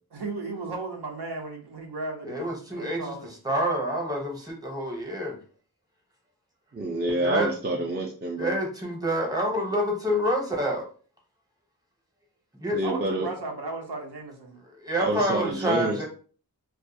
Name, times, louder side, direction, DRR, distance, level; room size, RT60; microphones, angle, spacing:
voice 1, 0.1-3.3 12.8-14.6, right 3 dB, 80° right, 0.7 m, -35 dB
voice 2, 2.2-3.1 3.4-5.4 7.2-7.5 8.4-10.9 12.6-12.8 14.8-16.1, equal, 10° right, 0.8 m, -27 dB
voice 3, 6.7-8.6 12.7-13.3 15.0-16.0, right 1 dB, 25° right, 0.4 m, -27 dB
2.4 x 2.3 x 2.7 m
wide cardioid pair, 65°, 39 cm